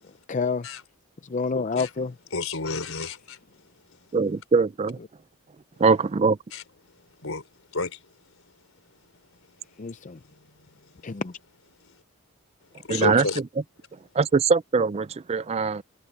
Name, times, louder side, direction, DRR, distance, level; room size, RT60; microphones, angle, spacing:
voice 1, 0.3-0.7 1.2-2.1 9.8-10.2 11.0-11.3, left 4 dB, 35° left, 0.5 m, -28 dB
voice 2, 2.3-4.0 6.5-6.6 7.2-8.3 10.5-10.9 11.8-12.0 12.8-13.4, left 3 dB, 75° left, 4.0 m, -32 dB
voice 3, 4.1-5.0 5.8-6.4 12.9-13.3 14.1-15.8, right 4 dB, 30° right, 0.4 m, -22 dB
head